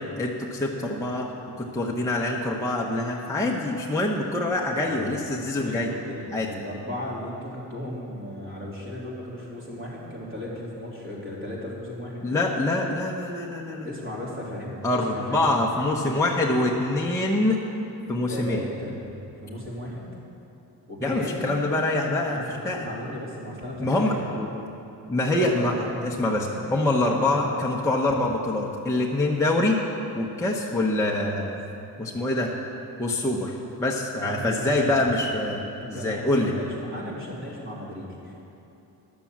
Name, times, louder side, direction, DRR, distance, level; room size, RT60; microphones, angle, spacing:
voice 1, 0.2-1.3 1.6-5.9 6.3-6.5 12.2-13.9 14.8-17.6 18.1-18.6 21.0-22.9 23.8-24.2 25.1-25.7 26.0-29.8 30.1-31.6 32.0-32.5 33.0-36.5, left 2 dB, 10° left, -3 dB, 0.8 m, -25 dB
voice 2, 4.7-12.2 13.8-15.4 15.7-16.2 18.3-19.1 19.4-20.1 20.9-21.5 22.3-24.5 25.4-27.6 34.2-34.9 35.6-38.3, left 1 dB, 30° right, -5 dB, 2.9 m, -36 dB
10.5 x 6.8 x 7.4 m, 2.9 s
cardioid pair, 100°, 38 cm